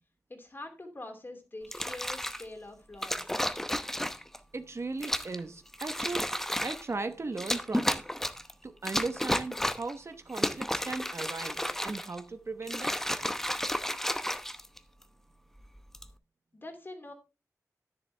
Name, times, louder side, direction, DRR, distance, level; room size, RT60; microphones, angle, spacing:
voice 1, 0.3-3.4 16.5-17.1, left 2 dB, 35° left, 2.7 m, -45 dB
sound 1, 1.6-2.4 3.0-4.4 5.0-5.4 5.7-6.9 7.4-8.5 8.9-9.9 10.3-12.2 12.6-15.0 15.8-16.1, equal, 5° left, 0.8 m, -32 dB
voice 2, 4.5-8.0 8.6-13.0, right 3 dB, 50° right, 1.0 m, -37 dB
10.5 x 10.5 x 3.3 m
wide cardioid pair, 95°, 6 cm